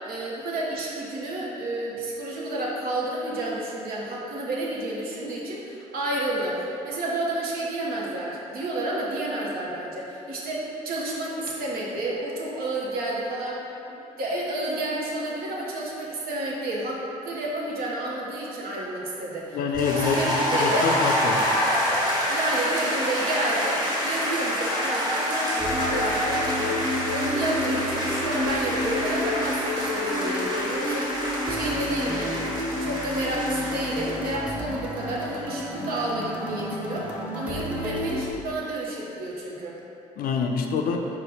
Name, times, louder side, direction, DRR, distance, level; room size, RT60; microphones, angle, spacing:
voice 1, 0.0-13.6 13.9-19.6 19.8-20.9 22.3-31.2 31.5-32.4 32.8-39.8, right 1 dB, 65° right, -4 dB, 0.9 m, -30 dB
voice 2, 19.5-20.2 20.5-21.4 40.2-41.1, left 5 dB, 60° left, 3 dB, 0.4 m, -26 dB
sound 1, 19.7-34.3, equal, 25° right, 1.5 m, -27 dB
sound 2, 25.6-38.3, left 1 dB, 5° right, 0.6 m, -31 dB
5.0 x 2.2 x 4.1 m, 2.8 s
hypercardioid pair, 55°, 17 cm